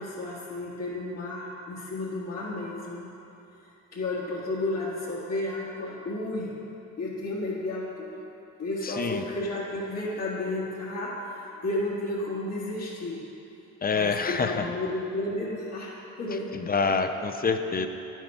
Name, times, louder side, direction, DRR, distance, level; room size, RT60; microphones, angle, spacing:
voice 1, 0.0-3.1 3.9-6.6 7.0-8.1 8.6-13.2 13.9-16.5, left 2 dB, 60° left, -8 dB, 1.8 m, -32 dB
voice 2, 8.8-9.2 13.8-14.7 16.5-17.9, left 4 dB, 30° left, 7 dB, 0.6 m, -26 dB
9.3 x 7.3 x 5.5 m, 2.9 s
cardioid pair, 90°, 30 cm